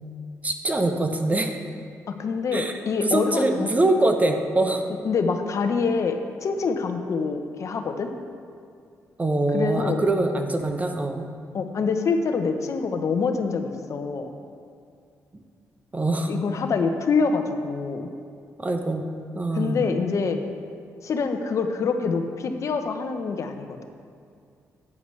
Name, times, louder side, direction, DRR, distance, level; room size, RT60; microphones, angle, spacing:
voice 1, 0.4-1.5 2.5-4.8 9.2-11.3 15.9-16.3 18.6-19.1 19.3-19.9, right 2 dB, 25° right, 5 dB, 0.9 m, -24 dB
voice 2, 2.1-3.7 5.0-8.1 9.5-10.0 11.5-14.3 16.3-18.1 19.5-20.4 21.0-23.8, left 5 dB, 60° left, 6 dB, 0.8 m, -25 dB
11.0 x 9.5 x 3.3 m, 2.3 s
cardioid pair, 75°, 6 cm